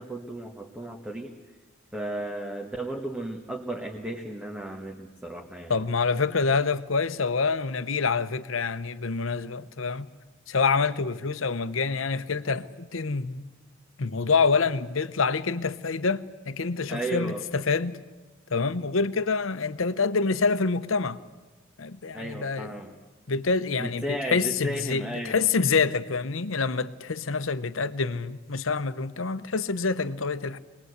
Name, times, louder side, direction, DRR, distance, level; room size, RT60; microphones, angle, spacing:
voice 1, 0.0-1.3 1.9-5.8 16.9-17.4 22.1-22.9 23.8-25.4, right 1 dB, 5° right, 1.4 m, -34 dB
voice 2, 5.7-10.1 10.5-13.5 14.0-18.0 18.5-21.2 21.8-22.7 23.3-30.6, left 4 dB, 80° left, 0.9 m, -26 dB
24.5 x 20.5 x 8.1 m
head